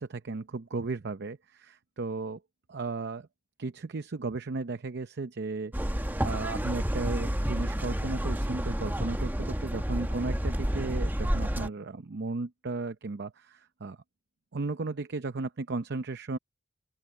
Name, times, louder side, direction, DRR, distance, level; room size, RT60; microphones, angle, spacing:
voice 1, 0.0-2.4 2.7-3.3 3.6-14.0 14.5-16.4, right 3 dB, 55° right, 0.7 m, -35 dB
sound 1, 5.7-11.7, equal, 10° right, 1.1 m, -30 dB
open air
head